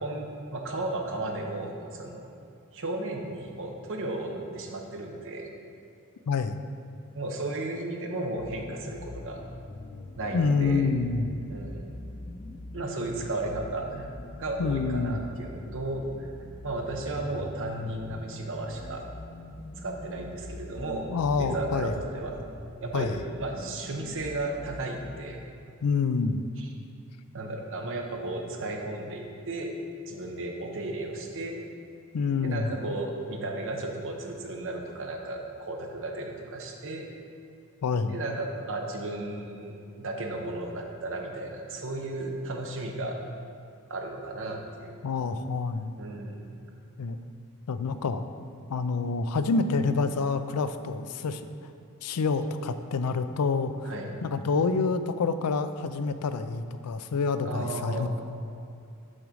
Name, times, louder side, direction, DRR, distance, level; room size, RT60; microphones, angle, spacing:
voice 1, 0.0-2.3 2.7-5.5 7.1-9.4 10.2-10.9 11.5-12.0 12.7-14.1 14.4-16.3 16.6-19.0 19.8-22.3 22.8-23.1 23.4-25.4 26.6-26.7 27.3-29.7 30.1-31.6 32.4-37.1 38.1-43.2 43.9-44.9 46.0-46.6 53.8-54.2 57.4-58.1, right 2 dB, 60° right, 2 dB, 0.9 m, -34 dB
sound 1, 8.4-25.2, left 1 dB, 25° left, 0.5 m, -43 dB
voice 2, 10.3-11.4 14.6-15.2 21.1-21.9 22.9-23.2 25.8-26.4 32.1-32.7 37.8-38.2 45.0-45.9 47.0-47.2 47.7-48.2 48.7-51.4 52.0-53.9 54.2-58.1, left 4 dB, 85° left, 10 dB, 0.4 m, -27 dB
6.2 x 5.1 x 6.2 m, 2.5 s
head